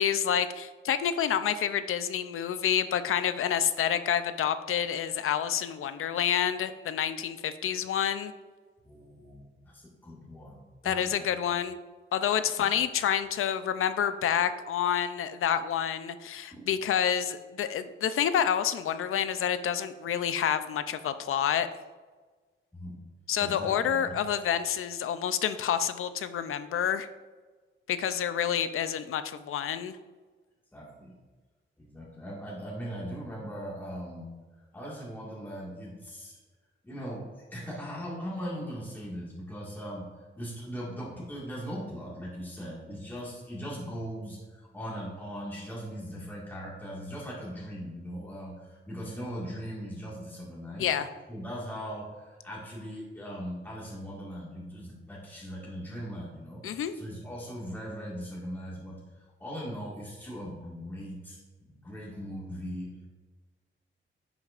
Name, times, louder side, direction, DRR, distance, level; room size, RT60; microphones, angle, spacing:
voice 1, 0.0-8.3 10.8-11.8 12.1-21.7 23.3-27.1 27.9-30.0 50.8-51.1 56.6-56.9, left 9 dB, 85° left, 11 dB, 0.5 m, -28 dB
voice 2, 8.8-11.3 12.6-12.7 16.5-16.7 22.7-23.0 23.4-24.2 30.7-31.2 31.8-34.3 34.7-36.4 36.8-40.1 40.4-50.9 51.3-56.6 56.9-63.1, equal, 10° left, -6 dB, 1.9 m, -39 dB
10.0 x 6.4 x 2.5 m, 1.3 s
wide cardioid pair, 135°, 21 cm